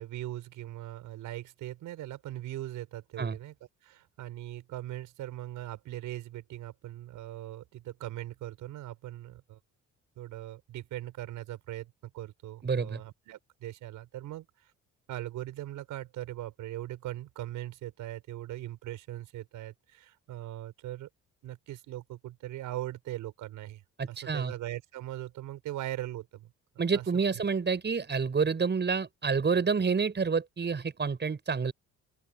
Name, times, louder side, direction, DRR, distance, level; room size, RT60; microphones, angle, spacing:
voice 1, 0.0-3.5 3.8-9.6 10.2-14.7 15.1-21.1 21.4-23.8 24.1-26.5 26.9-27.1 27.3-27.4, right 14 dB, 90° right, 5.5 m, -40 dB
voice 2, 12.6-13.0 24.0-24.5 26.8-31.7, right 5 dB, 35° right, 6.1 m, -28 dB
open air
cardioid pair, 90°, 30 cm